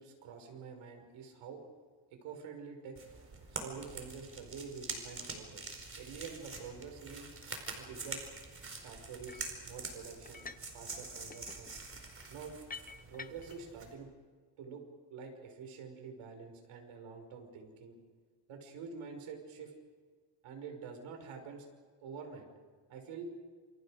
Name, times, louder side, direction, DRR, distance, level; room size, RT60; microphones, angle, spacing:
voice 1, 0.0-1.6 2.1-3.0 3.5-5.7 6.0-7.3 7.8-8.3 8.8-10.5 10.7-11.7 12.3-12.6 13.1-14.1 14.6-14.8 15.1-18.0 18.5-19.7 20.4-21.7 22.0-22.5 22.9-23.3, right 5 dB, 75° right, 4 dB, 5.8 m, -47 dB
sound 1, 3.0-14.0, right 3 dB, 25° right, 4.7 m, -45 dB
sound 2, 9.3-9.6 10.2-10.7 11.0-13.6, left 5 dB, 15° left, 0.8 m, -49 dB
28.5 x 28.0 x 5.1 m, 1.6 s
cardioid pair, 145°, 49 cm